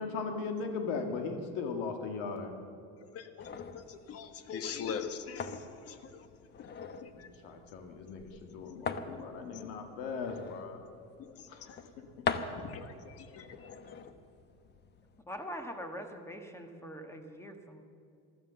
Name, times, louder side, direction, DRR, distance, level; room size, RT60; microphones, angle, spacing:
voice 1, 0.0-2.5 7.1-10.8 11.5-12.0, left 4 dB, 85° left, 5 dB, 1.9 m, -38 dB
voice 2, 3.1-3.5 3.7-6.3 7.0-7.3 8.7-9.3 11.2-11.3 11.7-11.8 12.6-13.8, left 6 dB, 50° left, 10 dB, 1.4 m, -42 dB
sound 1, 3.4-15.2, left 5 dB, 35° left, 1.0 m, -43 dB
voice 3, 15.3-17.8, equal, 10° left, 6 dB, 1.6 m, -43 dB
15.5 x 12.5 x 6.9 m, 2.6 s
cardioid pair, 130°, 31 cm